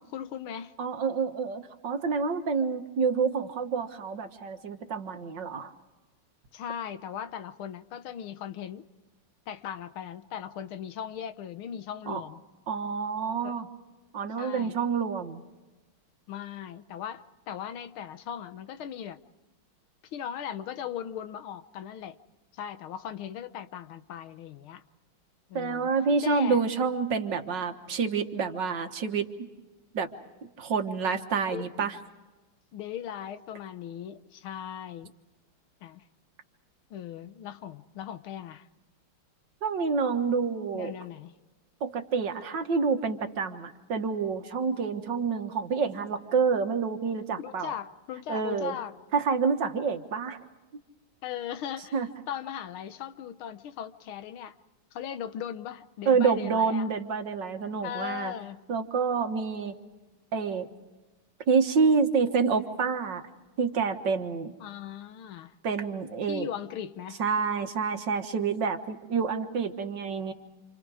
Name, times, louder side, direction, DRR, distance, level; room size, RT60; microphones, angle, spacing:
voice 1, 0.1-0.7 6.5-8.9 9.5-12.4 13.4-13.6 14.4-14.8 16.3-19.2 20.1-22.2 22.5-24.8 25.5-25.9 26.2-26.6 31.5-31.7 32.7-35.1 35.8-36.0 36.9-38.7 40.7-41.3 47.4-48.9 51.2-54.6 54.9-56.9 57.8-58.6 64.6-65.5 66.3-67.2, left 9 dB, 80° left, 1.8 m, -38 dB
voice 2, 0.8-5.7 12.1-12.2 12.7-13.7 14.1-15.4 25.5-29.3 29.9-30.1 30.6-32.0 39.6-40.9 41.8-47.7 48.3-48.8 49.1-50.4 51.9-52.1 56.1-58.3 58.7-59.8 60.3-60.7 61.5-63.2 63.6-64.5 65.6-66.5 67.2-70.3, right 5 dB, 60° right, 2.0 m, -28 dB
28.5 x 28.0 x 4.9 m
omnidirectional pair, 2.3 m